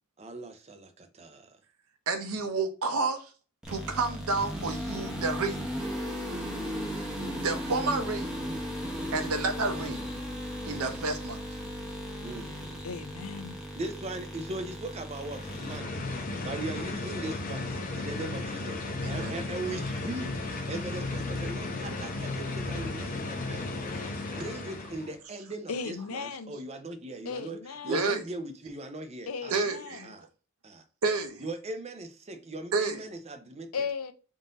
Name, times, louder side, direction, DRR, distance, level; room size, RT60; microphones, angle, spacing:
voice 1, 0.2-1.5 12.2-12.6 13.7-15.9 16.2-27.6 27.8-29.6 30.0-30.3 30.6-30.8 31.4-33.7, right 2 dB, 30° right, 0.6 m, -39 dB
voice 2, 2.1-3.3 3.7-5.6 6.9-8.4 9.1-10.0 10.7-11.4 19.0-19.4 27.9-28.2 29.5-30.1 31.0-31.4 32.7-33.0, right 3 dB, 85° right, 0.7 m, -30 dB
sound 1, 3.6-15.8, equal, 5° right, 0.8 m, -36 dB
voice 3, 12.8-13.6 25.7-26.6 27.2-28.1 29.3-30.1 33.7-34.1, left 5 dB, 80° left, 0.5 m, -36 dB
sound 2, 15.2-25.2, left 2 dB, 40° left, 0.7 m, -35 dB
3.7 x 2.6 x 3.8 m
head